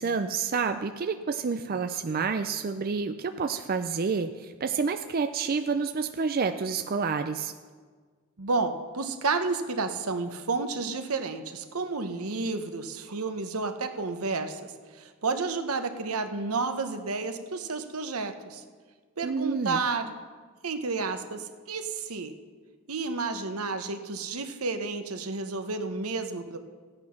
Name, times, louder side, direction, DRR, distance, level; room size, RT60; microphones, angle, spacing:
voice 1, 0.0-7.5 19.2-19.8, right 5 dB, 45° right, 8 dB, 0.4 m, -29 dB
voice 2, 8.4-18.6 19.2-20.2 20.6-22.3 22.9-26.6, right 4 dB, 85° right, 7 dB, 1.0 m, -31 dB
15.0 x 8.9 x 5.8 m, 1.5 s
head